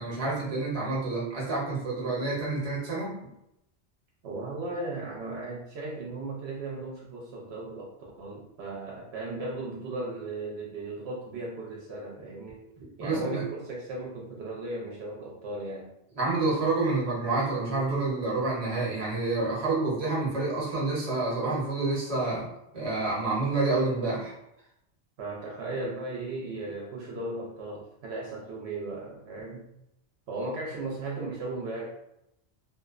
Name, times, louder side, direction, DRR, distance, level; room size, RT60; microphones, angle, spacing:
voice 1, 0.0-3.1 13.0-13.4 16.1-22.5 22.7-24.3, right 3 dB, 35° right, -5 dB, 0.8 m, -28 dB
voice 2, 4.2-15.9 25.2-29.7 30.3-31.9, right 2 dB, 70° right, -3 dB, 0.8 m, -36 dB
2.5 x 2.1 x 2.4 m, 0.81 s
omnidirectional pair, 1.1 m